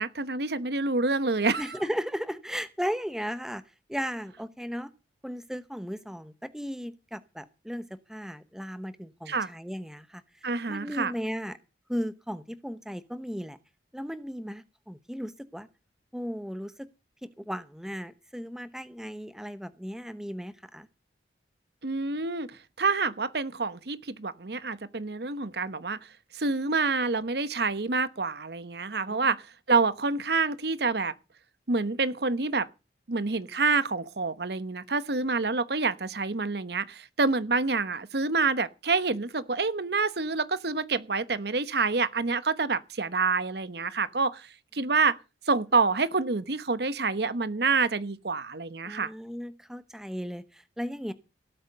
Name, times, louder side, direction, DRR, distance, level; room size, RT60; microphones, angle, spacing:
voice 1, 0.0-1.8 9.3-9.5 10.4-11.1 21.8-22.5 22.8-26.0 26.3-31.1 31.7-32.7 33.1-45.2 45.5-49.1, right 4 dB, 60° right, 1.0 m, -27 dB
voice 2, 1.6-3.6 3.9-4.9 5.2-10.2 10.7-11.6 11.9-13.6 13.9-15.7 16.1-16.9 17.2-20.9 29.1-29.3 48.8-51.1, equal, 5° right, 0.9 m, -36 dB
17.5 x 8.8 x 6.7 m
head